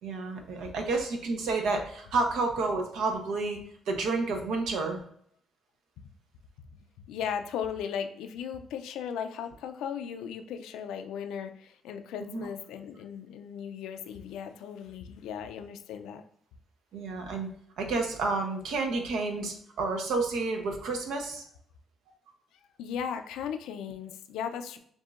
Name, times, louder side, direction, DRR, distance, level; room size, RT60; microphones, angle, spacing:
voice 1, 0.0-3.6 3.9-5.0 12.3-12.5 16.9-17.5 17.8-21.4, right 3 dB, 85° right, 3 dB, 0.9 m, -30 dB
voice 2, 7.1-16.2 22.8-24.8, left 8 dB, 90° left, 8 dB, 0.4 m, -37 dB
7.1 x 2.7 x 2.4 m, 0.65 s
cardioid pair, 90°, 0 cm